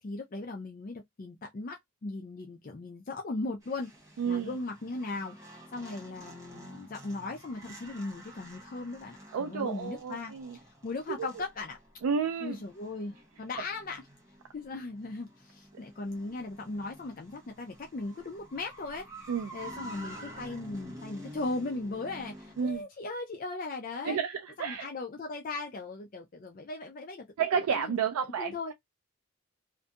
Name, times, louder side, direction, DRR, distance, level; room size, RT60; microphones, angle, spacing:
voice 1, 0.0-3.9 4.2-5.4 5.7-10.3 10.6-11.8 12.4-14.1 14.5-19.1 19.5-24.2 24.6-27.3 27.7-27.9 28.4-28.7, left 3 dB, 40° left, 0.4 m, -38 dB
sound 1, 3.6-22.8, right 1 dB, 15° right, 0.9 m, -50 dB
voice 2, 4.2-4.5 9.3-10.6 11.2-11.3 12.0-12.6 19.3-19.6 22.6-22.8 24.0-24.9 27.4-28.7, right 6 dB, 80° right, 0.4 m, -31 dB
2.6 x 2.6 x 2.2 m
head